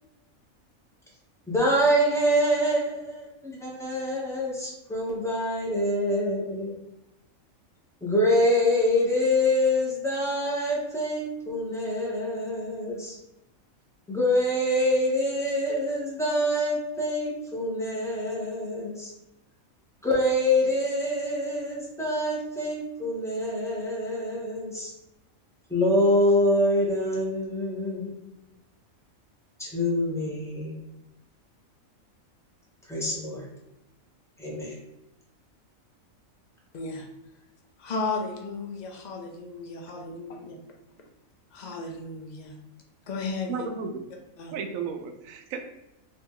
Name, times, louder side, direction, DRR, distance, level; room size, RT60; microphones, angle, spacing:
voice 1, 1.5-6.7 8.0-13.2 14.1-19.1 20.0-24.9 25.7-28.2 29.6-30.7 32.9-33.4 34.4-34.7, left 1 dB, 5° left, 0.7 m, -25 dB
voice 2, 36.7-37.1 37.8-40.6 41.5-42.6 43.1-43.7 44.4-44.5, left 3 dB, 65° left, 0.4 m, -34 dB
voice 3, 43.5-44.0 44.5-45.6, right 6 dB, 75° right, 0.9 m, -33 dB
3.1 x 2.8 x 3.6 m
omnidirectional pair, 1.5 m